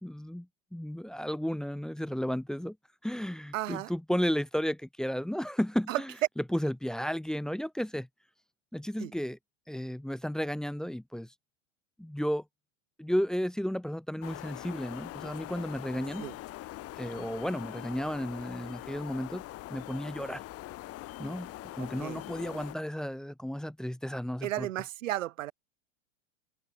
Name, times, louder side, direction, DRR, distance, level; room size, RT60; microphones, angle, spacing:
voice 1, 0.0-2.8 3.0-6.1 6.4-8.1 8.7-9.4 9.7-11.3 12.0-12.4 13.0-16.3 17.0-19.4 19.7-20.4 21.2-24.7, equal, ahead, 1.2 m, -33 dB
voice 2, 3.5-3.9 5.9-6.0 9.0-9.1 16.2-16.3 21.8-22.2 24.4-25.5, right 14 dB, 75° right, 1.0 m, -34 dB
sound 1, 14.2-22.8, left 16 dB, 35° left, 5.4 m, -43 dB
hypercardioid pair, 120°, 39 cm